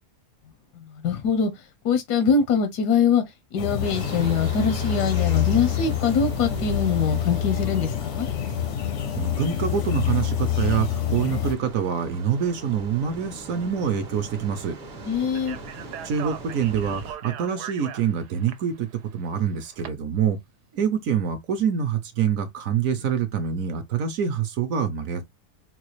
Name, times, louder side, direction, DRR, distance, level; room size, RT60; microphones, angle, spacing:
voice 1, 0.8-1.5 1.8-3.2 3.5-8.3 15.0-15.6, left 6 dB, 85° left, 1.3 m, -23 dB
sound 1, 3.6-11.6, left 10 dB, 70° left, 0.7 m, -26 dB
sound 2, 3.8-17.1, right 2 dB, 40° right, 0.7 m, -39 dB
voice 2, 9.0-14.8 16.0-20.4 20.7-25.2, right 7 dB, 65° right, 0.9 m, -26 dB
Speech, 15.3-19.9, right 9 dB, 85° right, 1.2 m, -40 dB
4.0 x 2.3 x 3.0 m
omnidirectional pair, 1.7 m